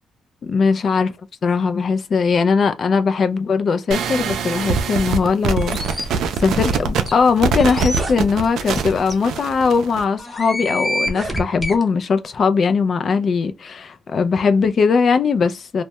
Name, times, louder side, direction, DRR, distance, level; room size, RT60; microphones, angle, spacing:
voice 1, 0.4-1.1 1.4-6.1 6.3-15.8, left 5 dB, 50° left, 0.4 m, -19 dB
sound 1, 3.9-10.0, right 5 dB, 75° right, 0.4 m, -23 dB
sound 2, 5.6-6.0 6.7-6.8 7.0-7.1 7.6-8.0 8.7-8.8 9.1-9.2 10.2-11.7, left 1 dB, 15° left, 0.8 m, -27 dB
sound 3, 7.5-8.2 9.1-9.3 10.0-10.1 11.0-11.9, right 2 dB, 30° right, 0.7 m, -32 dB
2.2 x 2.1 x 2.8 m
cardioid pair, 90°, 0 cm